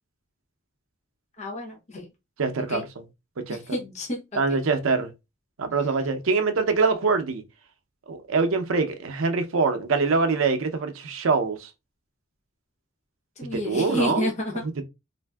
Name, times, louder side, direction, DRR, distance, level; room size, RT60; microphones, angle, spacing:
voice 1, 1.4-2.1 2.7-2.8 3.7-4.2 13.4-14.5, left 1 dB, 35° left, 0.7 m, -29 dB
voice 2, 2.4-3.0 3.4-3.8 4.3-5.1 5.6-7.4 8.1-11.7 13.5-14.3 14.6-14.8, right 4 dB, 85° right, 0.5 m, -24 dB
3.3 x 2.5 x 2.2 m
head